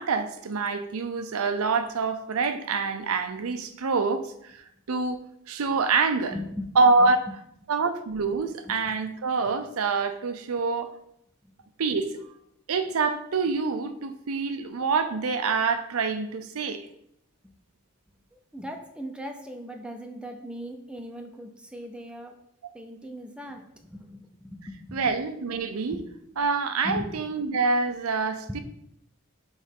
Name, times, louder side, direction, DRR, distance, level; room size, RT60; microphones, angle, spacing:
voice 1, 0.0-5.2 5.5-6.4 6.8-7.3 7.7-10.9 11.8-12.2 12.7-16.9 24.9-26.0 26.4-28.6, right 4 dB, 75° right, 9 dB, 0.5 m, -26 dB
voice 2, 6.3-6.7 7.0-7.1 8.7-8.8 18.5-22.3 22.7-25.0 25.9-26.0 26.8-27.1 28.5-28.6, equal, 5° right, 4 dB, 0.5 m, -38 dB
6.2 x 3.2 x 5.3 m, 0.76 s
head